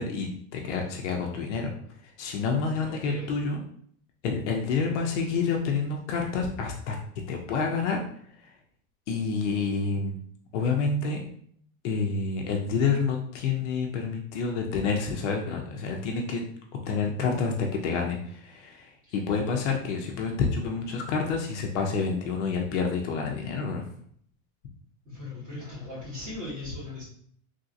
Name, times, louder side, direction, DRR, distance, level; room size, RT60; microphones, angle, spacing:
voice 1, 0.0-1.7 2.0-3.6 4.2-7.0 7.3-8.1 8.4-8.5 9.1-10.2 10.5-11.3 11.8-16.4 16.9-23.9, left 5 dB, 55° left, 1 dB, 0.5 m, -28 dB
voice 2, 2.7-3.3 19.1-19.2 25.0-27.0, left 2 dB, 20° right, -8 dB, 1.4 m, -38 dB
3.2 x 2.6 x 2.5 m, 0.63 s
supercardioid pair, 165°, 43 cm